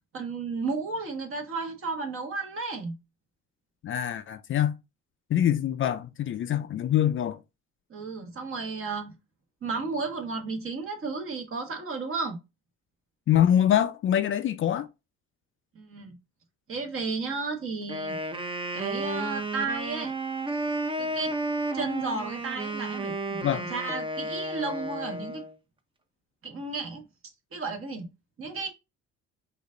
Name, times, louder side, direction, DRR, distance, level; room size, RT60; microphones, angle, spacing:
voice 1, 0.1-3.0 7.9-9.1 9.6-12.4 15.7-16.2 16.7-18.2 18.7-20.1 21.0-21.3 21.7-25.4 26.4-27.0 27.5-28.1 28.4-28.7, right 3 dB, 45° right, 1.4 m, -33 dB
voice 2, 3.8-4.8 5.3-7.4 13.3-14.9 23.4-23.6, left 10 dB, 45° left, 0.4 m, -24 dB
Wind instrument woodwind instrument, 17.8-25.5, right 2 dB, 15° right, 0.6 m, -32 dB
5.1 x 2.6 x 3.7 m
cardioid pair, 100°, 30 cm